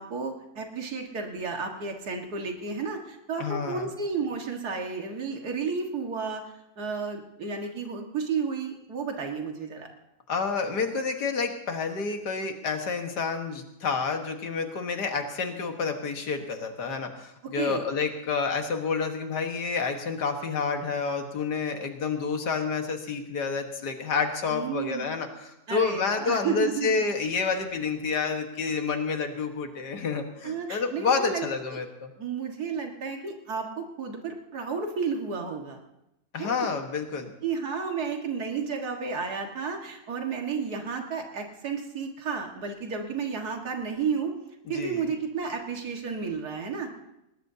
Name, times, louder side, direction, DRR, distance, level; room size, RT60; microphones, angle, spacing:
voice 1, 0.0-6.4 6.8-9.9 17.4-17.8 24.5-25.1 25.7-27.0 30.4-31.5 32.2-35.8 36.4-36.7 37.4-44.3 44.7-46.9, right 5 dB, 70° right, 2 dB, 2.3 m, -32 dB
voice 2, 3.4-3.9 10.3-32.1 36.3-37.3 44.7-45.0, left 5 dB, 85° left, 4 dB, 2.1 m, -29 dB
20.0 x 19.5 x 2.8 m, 0.86 s
omnidirectional pair, 1.7 m